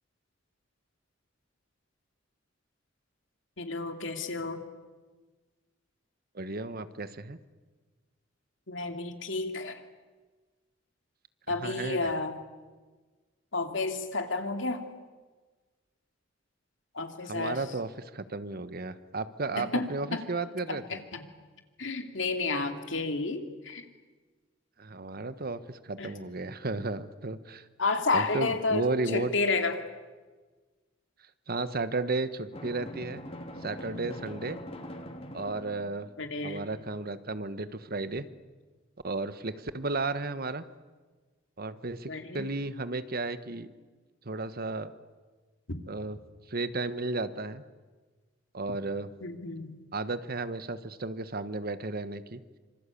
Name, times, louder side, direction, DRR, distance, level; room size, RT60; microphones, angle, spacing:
voice 1, 3.6-4.6 8.7-9.8 11.5-12.3 13.5-14.8 16.9-17.6 19.6-20.2 20.7-21.2 21.8-23.8 26.0-26.1 27.8-28.9 29.1-29.8 36.2-36.6 42.1-42.5 45.7-45.8 49.2-49.7, left 3 dB, 70° left, 6 dB, 2.8 m, -31 dB
voice 2, 6.3-7.4 11.6-12.1 17.3-21.0 24.8-27.6 28.1-29.3 31.5-33.2 33.6-34.6 35.3-36.1 36.4-38.2 39.0-40.6 41.6-43.7 44.2-44.9 45.9-46.2 46.5-47.6 48.5-49.1 49.9-52.4, right 3 dB, 50° right, 13 dB, 1.2 m, -33 dB
Drum, 32.5-36.3, equal, 30° left, 2.7 m, -43 dB
26.5 x 26.0 x 8.5 m, 1.3 s
head